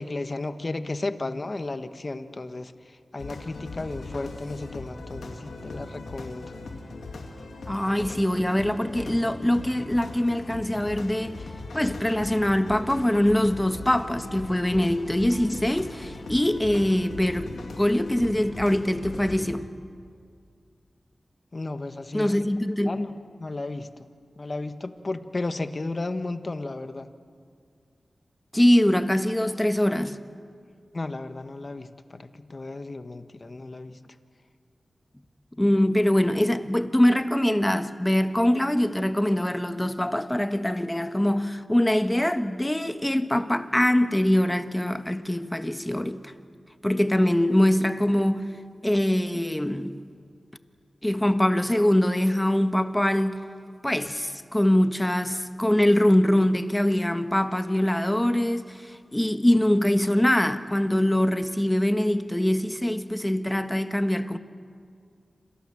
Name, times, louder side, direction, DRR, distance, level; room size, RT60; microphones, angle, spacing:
voice 1, 0.0-6.6 21.5-22.4 22.8-23.1 23.4-23.9 24.4-27.1 30.9-34.0 47.2-47.3, left 2 dB, 45° left, 1.4 m, -34 dB
sound 1, 3.2-19.5, left 3 dB, 90° left, 3.0 m, -39 dB
voice 2, 7.7-11.4 11.7-19.7 22.1-23.1 28.5-30.2 35.6-46.3 46.8-50.0 51.0-53.4 53.8-64.4, left 1 dB, 10° left, 1.3 m, -23 dB
28.0 x 25.5 x 7.5 m
cardioid pair, 55°, 0 cm